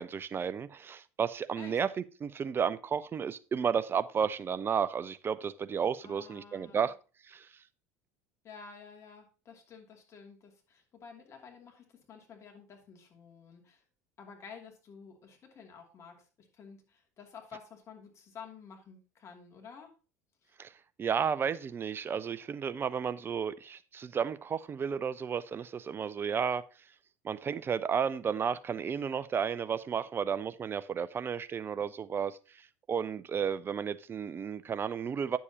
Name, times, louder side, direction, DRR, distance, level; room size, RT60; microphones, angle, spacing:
voice 1, 0.0-6.9 7.3-7.5 20.6-20.7 21.0-26.7 27.2-32.4 32.9-35.4, right 7 dB, 30° right, 0.5 m, -32 dB
voice 2, 6.0-6.9 8.4-13.8 14.2-19.9 20.4-20.5, left 6 dB, 40° left, 2.7 m, -51 dB
9.8 x 7.1 x 2.9 m
hypercardioid pair, 70°, 8 cm